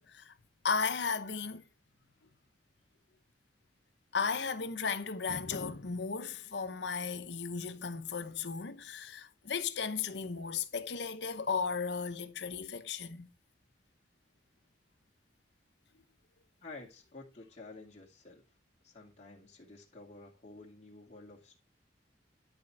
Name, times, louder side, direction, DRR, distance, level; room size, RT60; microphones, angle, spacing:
voice 1, 0.6-1.6 4.1-13.3, left 5 dB, 70° left, 0.9 m, -35 dB
voice 2, 16.6-18.4 18.8-21.6, left 3 dB, 40° left, 2.3 m, -51 dB
11.5 x 4.3 x 4.7 m
head